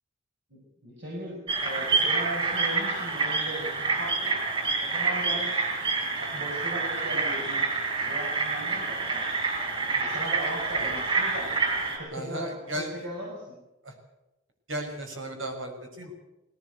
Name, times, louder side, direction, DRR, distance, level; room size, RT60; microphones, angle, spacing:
voice 1, 0.5-4.4 4.8-5.6 6.2-7.6 8.0-9.3 9.8-11.5 12.0-13.6, right 1 dB, 60° right, -2 dB, 6.2 m, -38 dB
sound 1, 1.5-12.0, right 4 dB, 30° right, 6.3 m, -28 dB
voice 2, 12.1-12.9 13.8-13.9 14.7-16.1, right 1 dB, 75° right, 4 dB, 5.8 m, -35 dB
19.5 x 18.0 x 8.1 m, 0.98 s
head